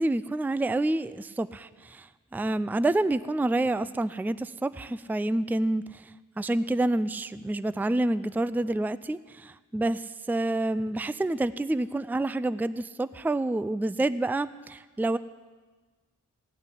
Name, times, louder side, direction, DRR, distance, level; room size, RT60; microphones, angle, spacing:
voice 1, 0.0-6.1 6.4-15.2, right 2 dB, 5° right, 15 dB, 0.4 m, -28 dB
16.5 x 6.5 x 10.0 m, 1.3 s
cardioid pair, 50°, 31 cm